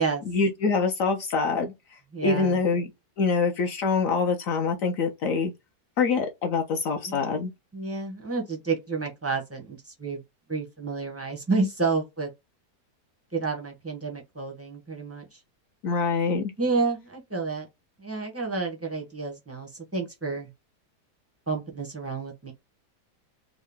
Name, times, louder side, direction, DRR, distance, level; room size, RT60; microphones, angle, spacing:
voice 1, 0.2-2.9 3.2-5.5 6.0-7.5 15.8-16.5, left 4 dB, 70° left, 0.8 m, -25 dB
voice 2, 2.1-2.6 7.1-7.4 7.7-10.2 10.5-12.3 13.3-15.2 16.6-17.7 18.0-20.5 21.5-22.5, right 4 dB, 20° right, 0.3 m, -30 dB
3.6 x 2.0 x 3.4 m
omnidirectional pair, 1.8 m